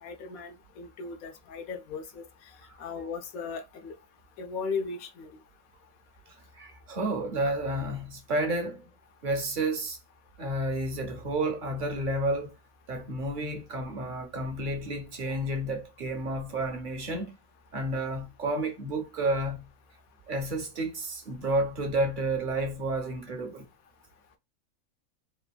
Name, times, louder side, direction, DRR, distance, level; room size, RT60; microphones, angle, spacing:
voice 1, 0.0-2.2 2.8-3.9 4.4-5.3, left 5 dB, 90° left, 1.2 m, -37 dB
voice 2, 6.5-8.9 9.2-10.0 10.4-12.6 12.9-17.4 17.7-19.7 20.3-23.7, right 1 dB, 55° right, 0.5 m, -31 dB
3.4 x 2.3 x 2.2 m
omnidirectional pair, 1.4 m